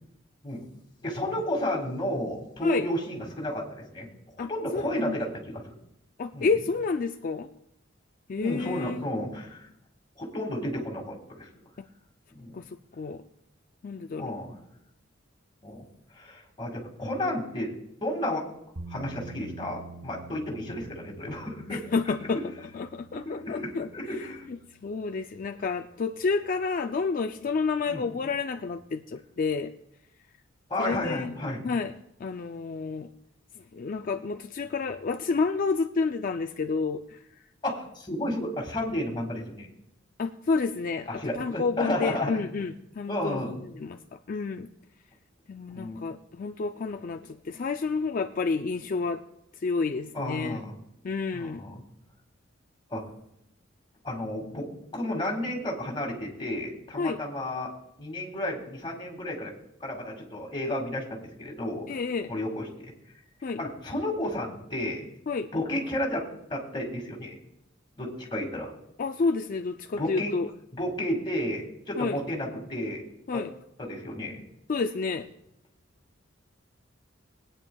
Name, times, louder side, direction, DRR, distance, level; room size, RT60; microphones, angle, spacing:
voice 1, 1.0-4.1 4.4-5.6 6.3-6.6 8.3-9.7 10.2-11.5 12.3-12.6 14.2-14.5 15.6-15.9 16.1-17.7 18.0-18.4 18.9-21.8 23.2-24.5 27.9-28.1 30.7-31.6 37.6-39.7 41.1-42.5 43.1-43.6 45.7-46.0 50.1-50.7 51.3-51.8 52.9-53.0 54.0-57.7 58.0-59.5 59.8-61.9 62.3-62.9 63.6-65.0 65.5-66.2 66.5-67.3 68.0-68.7 70.0-70.3 70.7-73.0 73.3-73.4 73.8-74.4, left 1 dB, 25° left, -1 dB, 2.0 m, -32 dB
voice 2, 4.4-5.2 6.2-7.5 8.3-9.0 12.5-12.7 12.9-13.2 13.8-14.4 21.7-22.4 22.7-24.6 24.8-29.7 30.8-31.3 31.6-31.9 32.2-33.1 33.7-37.2 40.2-44.0 44.3-44.7 45.5-49.2 49.6-50.6 51.0-51.6 57.0-57.2 61.9-62.3 63.4-63.6 65.3-65.5 69.0-70.5 72.0-72.2 73.3-73.5 74.7-75.3, left 4 dB, 45° left, 5 dB, 0.4 m, -30 dB
sound 1, 18.8-26.8, right 3 dB, 70° right, 1.5 m, -48 dB
22.5 x 8.9 x 2.3 m, 0.81 s
head